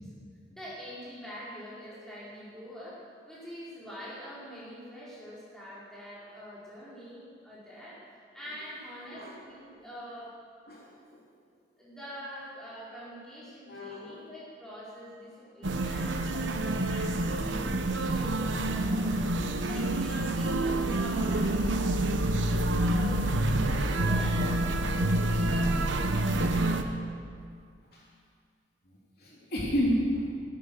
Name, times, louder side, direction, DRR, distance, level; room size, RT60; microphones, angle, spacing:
voice 1, 0.5-8.0 8.3-10.3 11.8-19.2 19.7-22.0 22.8-27.0, equal, 5° left, -9 dB, 5.0 m, -45 dB
voice 2, 13.7-14.1 27.9-28.0 29.2-30.3, equal, 55° left, -5 dB, 3.5 m, -30 dB
sound 1, 15.6-26.8, right 1 dB, 80° right, 1.0 m, -27 dB
16.5 x 12.5 x 6.5 m, 2.2 s
head